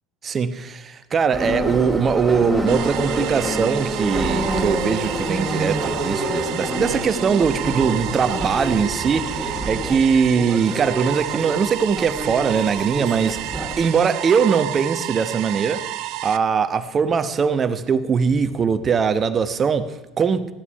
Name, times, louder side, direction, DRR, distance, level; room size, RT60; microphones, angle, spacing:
voice 1, 0.2-13.4 13.8-20.5, right 6 dB, 30° right, 1.0 m, -21 dB
Subway metro underground, 1.3-13.8, equal, 5° right, 2.8 m, -27 dB
sound 1, 2.7-16.4, right 14 dB, 55° right, 0.5 m, -31 dB
15.0 x 11.0 x 5.6 m
figure-of-eight pair, 65°, 0 cm